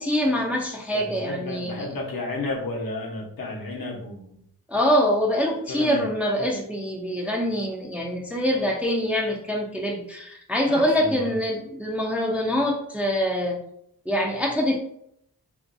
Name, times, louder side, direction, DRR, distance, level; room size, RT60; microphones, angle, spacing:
voice 1, 0.0-1.9 4.7-13.6 14.1-14.8, equal, 5° right, 0 dB, 0.4 m, -24 dB
voice 2, 0.9-4.4 5.7-6.0 10.7-11.3, left 2 dB, 70° left, -1 dB, 0.9 m, -32 dB
3.8 x 2.6 x 2.5 m, 0.72 s
wide cardioid pair, 120°, 36 cm